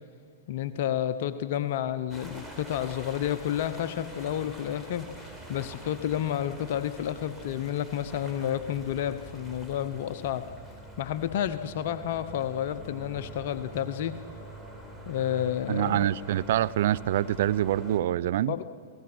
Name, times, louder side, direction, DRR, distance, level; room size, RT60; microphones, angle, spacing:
voice 1, 0.5-10.5 11.0-14.2 15.1-16.1 18.5-18.7, left 10 dB, 60° left, 0.8 m, -30 dB
sound 1, 2.1-18.0, right 2 dB, ahead, 4.1 m, -45 dB
voice 2, 15.7-18.5, right 12 dB, 65° right, 0.6 m, -25 dB
28.5 x 18.5 x 6.2 m
hypercardioid pair, 115°, 0 cm